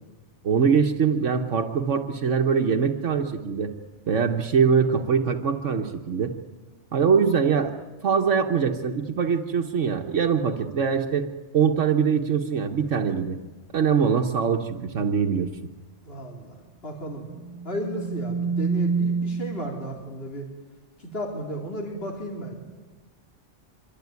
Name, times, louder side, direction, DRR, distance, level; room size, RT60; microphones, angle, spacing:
voice 1, 0.4-3.7 4.1-6.3 6.9-7.7 8.0-11.3 11.5-13.4 13.7-15.5, right 6 dB, 80° right, 3 dB, 1.5 m, -23 dB
voice 2, 16.0-17.3 17.6-20.4 21.0-22.5, equal, 55° left, 0 dB, 4.1 m, -34 dB
sound 1, 17.3-19.9, right 5 dB, 30° right, 1.0 m, -27 dB
25.0 x 24.0 x 9.6 m, 1.3 s
omnidirectional pair, 1.2 m